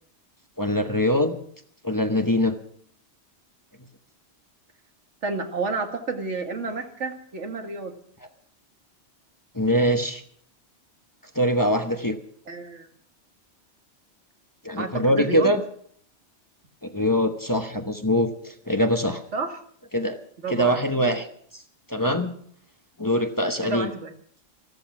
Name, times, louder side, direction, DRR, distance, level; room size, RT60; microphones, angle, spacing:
voice 1, 0.6-1.4 1.8-2.6 9.5-10.2 11.3-12.2 14.6-15.6 16.8-19.2 19.9-20.2 20.5-21.3 21.9-22.3 23.0-23.9, equal, 20° left, 6 dB, 1.0 m, -23 dB
voice 2, 5.2-7.9 12.5-12.9 14.8-15.5 19.3-19.6 20.4-20.8 23.6-24.1, right 3 dB, 90° right, 5 dB, 2.1 m, -30 dB
14.5 x 13.5 x 6.0 m, 0.62 s
omnidirectional pair, 1.2 m